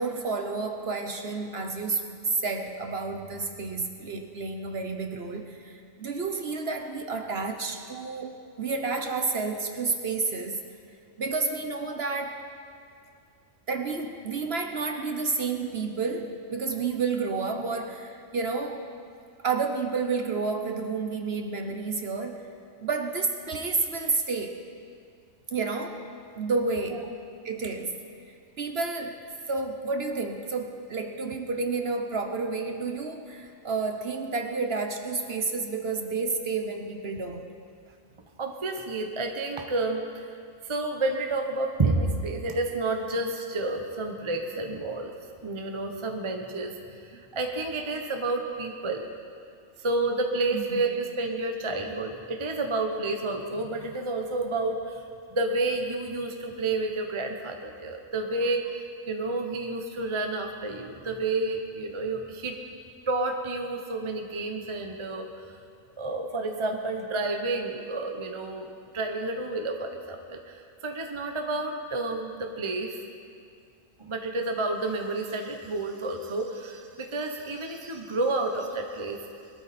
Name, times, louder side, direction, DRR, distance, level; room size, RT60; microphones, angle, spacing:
voice 1, 0.0-10.6 11.2-12.4 13.7-18.8 19.4-22.5 22.8-24.6 25.5-26.1 26.4-27.1 27.4-28.0 28.6-29.2 29.5-37.5 47.1-47.2 50.5-50.8, right 4 dB, 50° right, 5 dB, 1.0 m, -30 dB
voice 2, 38.4-40.3 40.6-45.1 45.4-49.1 49.8-55.0 55.3-62.6 63.1-65.5 66.0-68.7 68.9-73.0 74.0-79.2, right 2 dB, 25° right, 3 dB, 0.8 m, -30 dB
20.5 x 13.0 x 4.3 m, 2.3 s
omnidirectional pair, 1.5 m